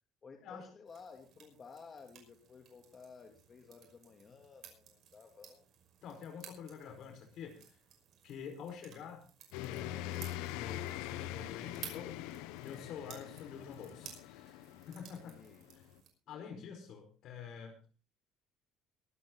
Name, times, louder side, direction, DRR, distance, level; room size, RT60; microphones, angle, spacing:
voice 1, 0.2-5.7 15.2-15.7 16.3-16.4, left 5 dB, 30° left, 3 dB, 2.8 m, -55 dB
sound 1, 0.9-16.1, right 8 dB, 50° right, 5.7 m, -56 dB
voice 2, 6.0-7.8 8.2-9.2 9.6-12.2 12.6-15.3 15.7-15.8 16.3-17.8, left 7 dB, 60° left, 4 dB, 4.8 m, -48 dB
sound 2, 9.5-16.0, left 14 dB, 90° left, 0.9 m, -43 dB
23.0 x 9.5 x 3.9 m, 0.34 s
cardioid pair, 130°, 0 cm